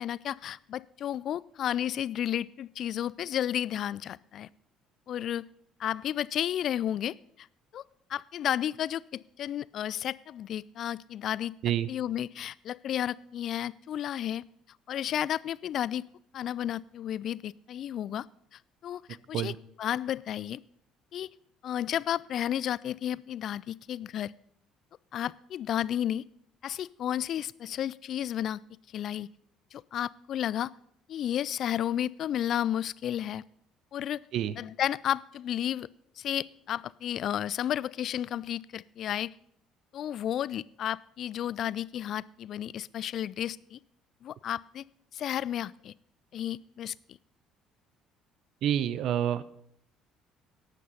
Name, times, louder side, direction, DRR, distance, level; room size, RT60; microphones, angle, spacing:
voice 1, 0.0-4.5 5.1-5.4 5.8-7.5 7.7-7.8 8.1-11.5 11.9-14.4 14.9-16.0 16.3-18.3 18.5-19.0 19.3-20.6 21.1-21.3 21.6-24.3 25.1-26.2 26.6-28.6 28.9-29.3 29.7-30.7 31.1-33.4 33.9-34.2 34.6-35.9 36.2-39.3 39.9-43.8 44.2-44.8 45.1-45.9 46.3-46.9, left 10 dB, 55° left, 22 dB, 0.3 m, -32 dB
voice 2, 48.6-49.4, right 10 dB, 60° right, 16 dB, 0.6 m, -27 dB
12.0 x 8.4 x 5.6 m, 0.72 s
hypercardioid pair, 55°, 0 cm